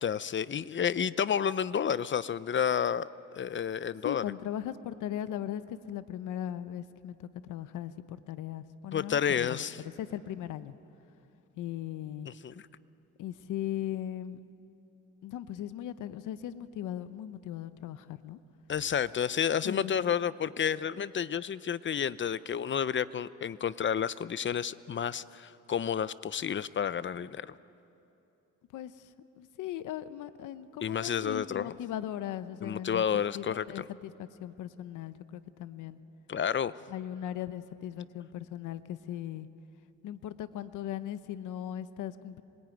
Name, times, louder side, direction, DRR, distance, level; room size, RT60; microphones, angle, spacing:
voice 1, 0.0-3.1 3.3-4.2 8.9-9.8 12.3-12.5 18.7-27.5 30.8-31.7 32.6-33.9 36.3-36.7, left 8 dB, 40° left, 16 dB, 0.7 m, -30 dB
voice 2, 4.0-9.6 10.0-10.7 11.6-12.3 13.2-14.4 15.2-18.4 19.6-20.0 28.7-29.1 29.4-33.0 33.3-36.0 36.9-39.5 40.0-42.4, left 11 dB, 80° left, 13 dB, 0.9 m, -38 dB
26.0 x 21.5 x 9.2 m, 2.8 s
cardioid pair, 90°, 30 cm